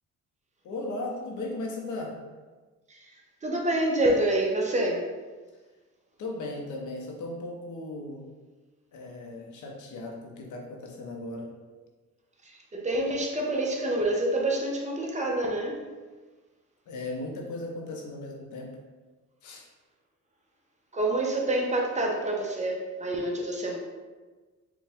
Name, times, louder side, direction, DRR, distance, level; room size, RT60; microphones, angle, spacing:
voice 1, 0.6-2.2 6.2-8.3 8.9-11.5 16.9-18.8 19.4-19.7, left 2 dB, 75° left, 0 dB, 0.9 m, -37 dB
voice 2, 3.4-5.1 12.7-15.9 20.9-23.8, right 1 dB, 25° right, -1 dB, 0.9 m, -27 dB
4.8 x 2.4 x 3.6 m, 1.3 s
cardioid pair, 90°, 30 cm